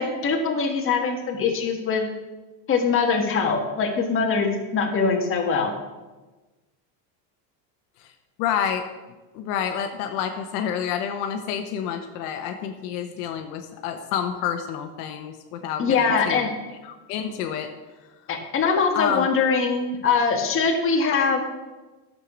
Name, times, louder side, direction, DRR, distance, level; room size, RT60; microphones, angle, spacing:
voice 1, 0.0-2.0 2.7-5.7 15.8-16.5 18.3-21.4, left 5 dB, 25° left, 1 dB, 1.7 m, -22 dB
voice 2, 8.4-8.8 9.3-16.0 16.2-16.5 17.1-17.7 18.9-19.3, left 8 dB, 70° left, 5 dB, 1.2 m, -28 dB
11.5 x 6.8 x 6.1 m, 1.2 s
cardioid pair, 150°, 47 cm